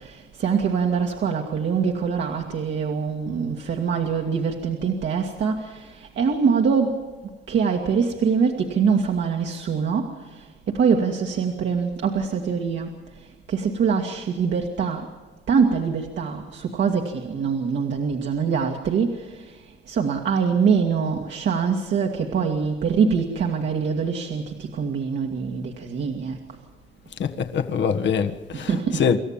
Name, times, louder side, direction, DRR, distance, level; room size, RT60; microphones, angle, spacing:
voice 1, 0.4-5.7 6.2-6.9 7.5-10.1 10.7-12.9 13.5-15.0 15.5-19.2 19.9-24.4 24.7-26.4 28.5-29.0, right 6 dB, 65° right, 2.0 m, -23 dB
voice 2, 27.2-29.2, left 7 dB, 65° left, 1.5 m, -24 dB
27.0 x 14.0 x 7.3 m
cardioid pair, 90°, 20 cm